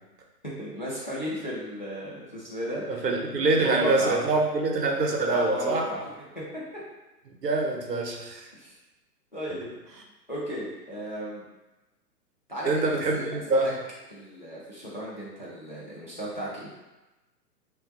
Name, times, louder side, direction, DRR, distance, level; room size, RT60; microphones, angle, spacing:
voice 1, 0.4-3.0 3.5-4.2 5.3-6.8 8.5-8.7 9.3-9.7 10.3-11.5 12.5-13.3 13.5-13.7 14.1-16.7, equal, 30° left, -7 dB, 0.3 m, -34 dB
voice 2, 2.9-5.9 7.4-8.5 12.7-13.7, right 2 dB, 70° right, 1 dB, 0.7 m, -25 dB
3.5 x 2.2 x 2.7 m, 1.1 s
figure-of-eight pair, 120°, 50 cm